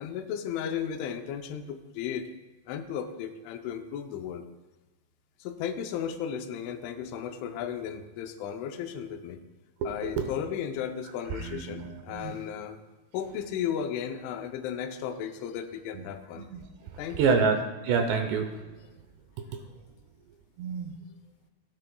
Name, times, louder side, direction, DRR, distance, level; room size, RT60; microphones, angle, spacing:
voice 1, 0.0-2.3 2.7-4.4 5.4-9.4 9.8-12.8 13.1-16.5 17.0-17.5, left 8 dB, 85° left, 7 dB, 3.1 m, -35 dB
voice 2, 11.4-12.3 15.9-16.0 16.4-16.6 17.2-17.6 17.9-18.5 20.6-20.9, right 6 dB, 75° right, 5 dB, 2.7 m, -27 dB
16.0 x 10.0 x 2.3 m, 1.1 s
omnidirectional pair, 5.4 m